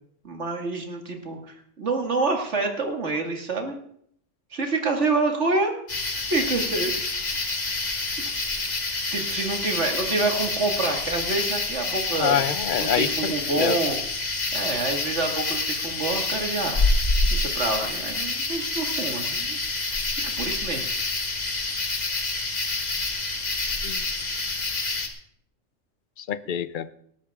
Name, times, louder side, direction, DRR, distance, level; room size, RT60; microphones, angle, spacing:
voice 1, 0.2-3.8 4.5-5.8 6.2-7.4 9.1-12.4 12.8-14.0 14.5-16.8 17.3-19.6 20.2-20.9, right 3 dB, 65° right, 3 dB, 2.5 m, -27 dB
sound 1, 5.9-25.1, left 3 dB, 35° left, 1.6 m, -27 dB
voice 2, 12.2-13.8 23.8-24.1 26.2-26.9, left 9 dB, 50° left, 15 dB, 0.7 m, -26 dB
19.0 x 12.5 x 3.7 m, 0.67 s
omnidirectional pair, 1.3 m